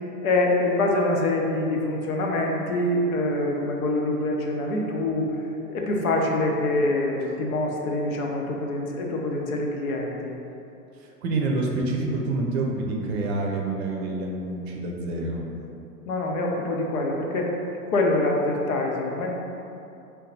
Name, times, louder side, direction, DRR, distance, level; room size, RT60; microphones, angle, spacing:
voice 1, 0.2-5.3 5.7-10.3 16.1-17.5 17.9-19.3, left 2 dB, 60° left, 0 dB, 0.7 m, -25 dB
voice 2, 11.0-15.5, right 2 dB, 40° right, 0 dB, 0.6 m, -27 dB
4.5 x 2.3 x 3.8 m, 2.8 s
figure-of-eight pair, 100°, 48 cm